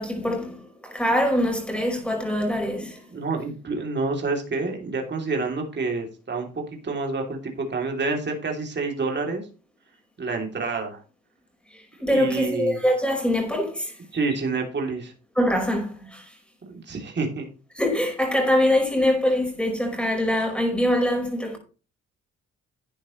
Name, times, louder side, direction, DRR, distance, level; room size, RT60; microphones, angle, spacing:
voice 1, 0.0-3.1 11.7-14.0 15.4-16.4 17.8-21.6, left 1 dB, 5° left, 5.1 m, -24 dB
voice 2, 3.1-9.5 10.2-11.0 12.1-12.8 14.1-15.1 16.7-17.5, right 3 dB, 35° right, 3.2 m, -28 dB
11.5 x 9.6 x 3.2 m
cardioid pair, 90°, 30 cm